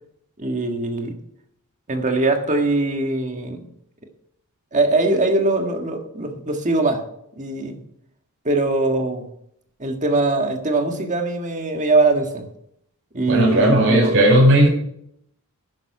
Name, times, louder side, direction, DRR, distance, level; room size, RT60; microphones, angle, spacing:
voice 1, 0.4-1.1 1.9-3.7 4.7-7.0 7.4-7.8 8.5-9.3 9.8-12.5 13.1-14.1, right 2 dB, 35° right, 4 dB, 1.6 m, -21 dB
voice 2, 13.3-14.7, right 1 dB, 60° right, -2 dB, 5.3 m, -15 dB
11.0 x 10.0 x 4.9 m, 0.73 s
head